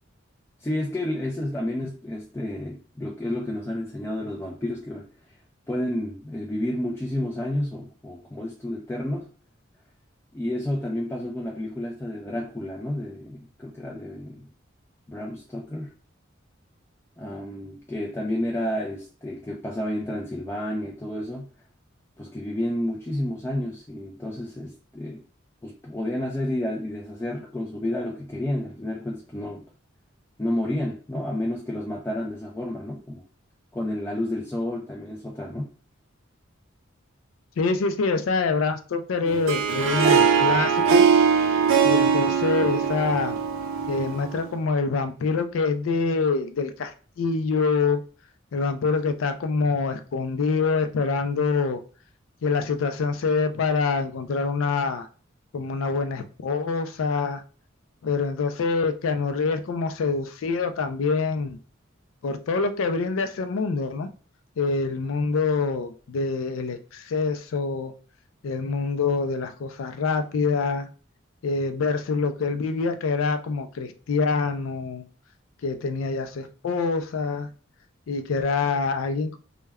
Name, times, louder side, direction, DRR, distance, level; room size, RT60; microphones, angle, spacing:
voice 1, 0.6-5.1 5.7-9.3 10.3-14.5 15.1-15.9 17.2-21.5 22.2-25.2 25.6-29.6 30.4-33.2 33.7-35.7, left 1 dB, 15° left, 0.4 m, -30 dB
voice 2, 37.6-41.1 41.8-43.4 43.9-48.0 48.5-51.8 52.4-55.1 55.5-57.4 58.0-61.6 62.2-64.1 64.6-67.9 68.4-70.9 71.4-75.0 75.6-77.5 78.1-79.4, left 4 dB, 80° left, 0.4 m, -25 dB
Harp, 39.3-44.5, right 6 dB, 85° right, 0.4 m, -21 dB
2.2 x 2.1 x 3.4 m
head